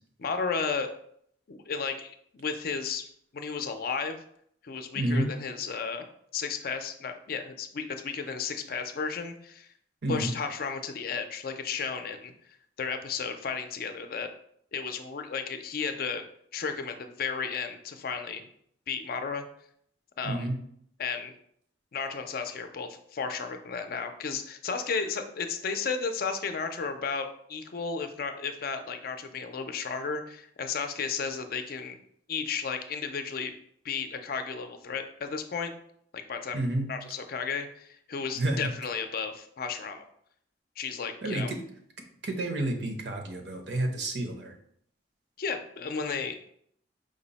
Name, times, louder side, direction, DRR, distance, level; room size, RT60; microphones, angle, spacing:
voice 1, 0.2-0.9 1.5-3.1 3.3-4.2 4.6-6.1 6.3-9.7 10.1-12.3 12.8-14.3 14.7-16.2 16.5-18.4 18.9-19.4 20.2-20.5 21.0-21.3 21.9-32.0 32.3-33.5 33.8-35.7 36.1-36.6 36.9-40.1 40.8-41.5 45.4-46.5, left 5 dB, 50° left, 7 dB, 0.4 m, -33 dB
voice 2, 4.9-5.3 10.0-10.3 20.2-20.6 36.5-36.9 38.3-38.7 41.2-41.6 42.2-44.5, right 1 dB, 70° right, 3 dB, 0.7 m, -30 dB
5.0 x 2.0 x 3.9 m, 0.67 s
head